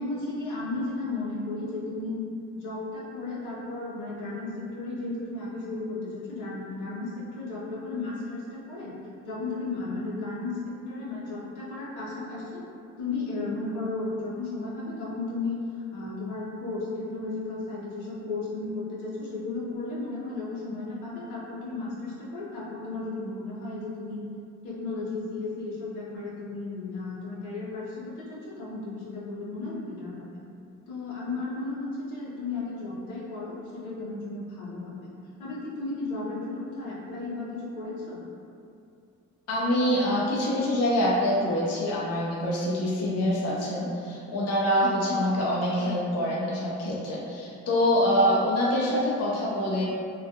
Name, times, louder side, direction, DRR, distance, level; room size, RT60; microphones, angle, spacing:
voice 1, 0.0-2.2 2.5-9.0 9.3-12.6 13.0-24.2 24.6-30.4 30.9-35.1 35.4-38.2, left 3 dB, 90° left, -7 dB, 0.7 m, -34 dB
voice 2, 39.5-49.9, equal, 55° left, -5 dB, 0.5 m, -25 dB
2.3 x 2.2 x 2.7 m, 2.5 s
cardioid pair, 90°, 30 cm